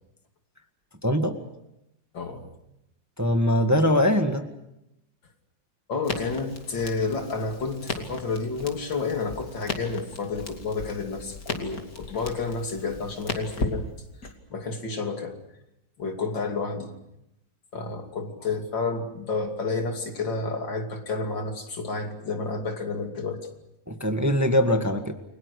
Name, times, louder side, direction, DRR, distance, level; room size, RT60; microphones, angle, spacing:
voice 1, 1.0-1.4 3.2-4.5 23.9-25.1, equal, 10° right, 6 dB, 1.5 m, -22 dB
voice 2, 2.1-2.5 5.9-13.8 14.5-15.4 16.0-16.9 17.7-23.4, left 4 dB, 80° left, 4 dB, 3.5 m, -30 dB
Crackle, 6.0-14.3, left 3 dB, 50° left, 3.1 m, -36 dB
30.0 x 23.0 x 6.5 m, 0.85 s
omnidirectional pair, 2.0 m